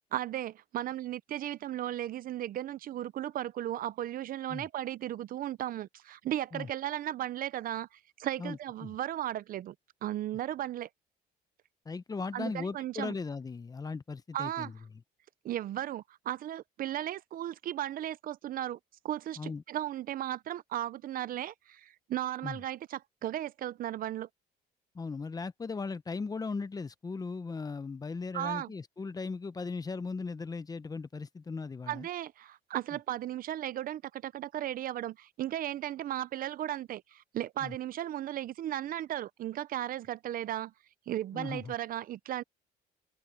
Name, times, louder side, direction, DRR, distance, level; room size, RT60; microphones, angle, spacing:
voice 1, 0.1-9.7 10.0-10.9 12.3-13.1 14.3-14.7 15.4-18.8 19.0-24.3 28.3-28.7 31.9-40.7 41.1-42.4, right 12 dB, 55° right, 0.7 m, -36 dB
voice 2, 8.4-9.0 11.8-14.8 19.4-19.6 22.4-22.6 24.9-32.1 37.6-37.8 41.3-41.7, left 4 dB, 20° left, 0.8 m, -38 dB
cardioid pair, 110°, 17 cm